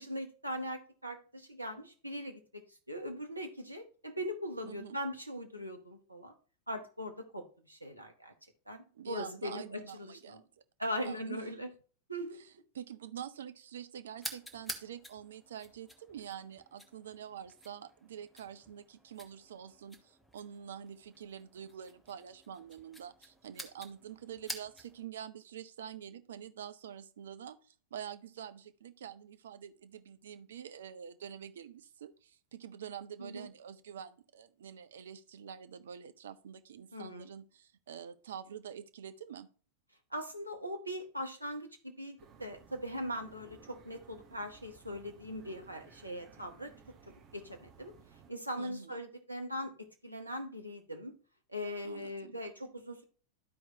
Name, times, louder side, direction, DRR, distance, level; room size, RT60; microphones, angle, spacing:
voice 1, 0.0-6.3 6.7-8.3 8.7-10.4 10.8-11.7 12.1-12.4 33.2-33.5 36.9-37.3 40.1-46.7 47.3-47.9 48.3-51.1 51.5-53.0, equal, 85° right, 1.0 m, -40 dB
voice 2, 4.6-5.0 8.9-10.5 11.0-11.4 12.3-39.5 48.6-49.0 51.8-52.4, right 9 dB, 65° right, 0.5 m, -46 dB
sound 1, 14.2-25.1, equal, 5° left, 1.0 m, -49 dB
sound 2, 42.2-48.3, right 7 dB, 35° right, 1.1 m, -59 dB
12.0 x 4.6 x 2.8 m
figure-of-eight pair, 90°, 0 cm